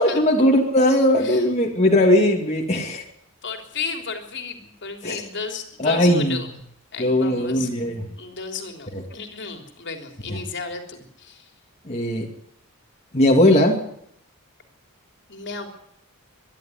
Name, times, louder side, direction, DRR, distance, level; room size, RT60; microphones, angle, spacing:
voice 1, 0.0-3.0 5.0-5.2 5.8-6.4 7.0-8.1 8.9-9.0 10.3-10.4 11.8-12.3 13.1-13.8, left 1 dB, 30° left, -1 dB, 2.8 m, -19 dB
voice 2, 3.4-6.5 6.9-7.7 8.2-11.4 15.3-15.7, left 4 dB, 55° left, 5 dB, 3.5 m, -33 dB
24.0 x 12.0 x 9.7 m, 0.71 s
head